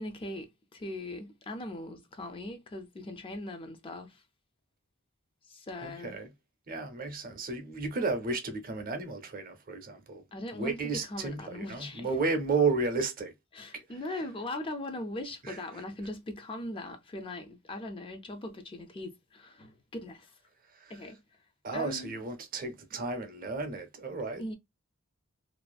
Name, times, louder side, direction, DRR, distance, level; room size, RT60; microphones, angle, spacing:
voice 1, 0.0-4.2 5.5-6.1 10.3-10.8 11.0-12.1 13.5-20.3 20.9-21.2 21.7-22.1 24.4-24.6, left 1 dB, 25° left, 0.3 m, -40 dB
voice 2, 5.8-6.3 6.7-10.2 10.5-13.3 13.7-14.2 15.4-15.8 20.7-21.0 21.6-24.6, right 4 dB, 45° right, 0.6 m, -33 dB
2.4 x 2.3 x 2.3 m
head